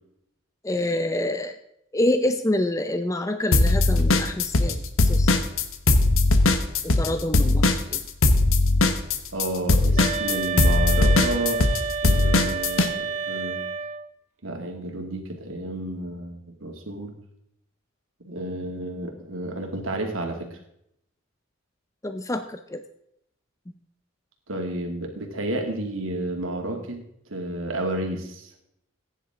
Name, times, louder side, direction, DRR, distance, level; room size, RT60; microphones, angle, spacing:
voice 1, 0.6-1.6 1.9-5.4 6.8-8.0 22.0-22.8, left 1 dB, 15° left, 8 dB, 0.6 m, -27 dB
sound 1, 3.5-4.7 5.0-12.9, left 2 dB, 85° left, 1.2 m, -19 dB
voice 2, 9.3-13.6 14.4-17.1 18.2-20.6 24.5-27.0 27.3-28.5, right 1 dB, 75° right, 3 dB, 2.4 m, -31 dB
sound 2, 10.0-14.1, right 5 dB, 35° right, 1.0 m, -29 dB
15.5 x 10.0 x 3.7 m, 0.76 s
head